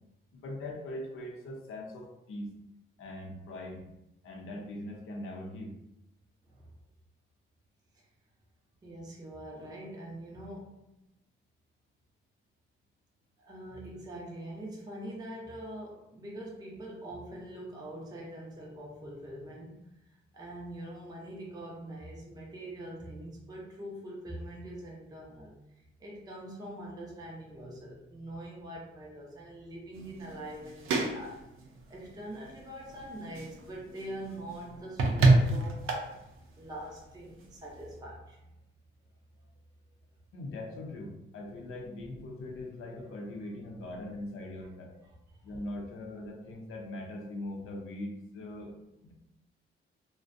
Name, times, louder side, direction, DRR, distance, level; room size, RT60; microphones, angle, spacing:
voice 1, 0.3-2.5 3.0-3.8 4.2-5.7 40.3-44.9 45.4-48.7 49.0-49.1, left 1 dB, 85° left, 0 dB, 0.6 m, -41 dB
voice 2, 8.8-10.8 13.4-19.8 20.3-31.4 31.9-36.0 36.6-38.4 43.1-43.2 45.0-45.4, right 1 dB, 20° right, -3 dB, 0.5 m, -43 dB
sound 1, 29.9-38.0, right 2 dB, 80° right, 0.5 m, -30 dB
2.4 x 2.1 x 2.4 m, 0.90 s
cardioid pair, 125°, 21 cm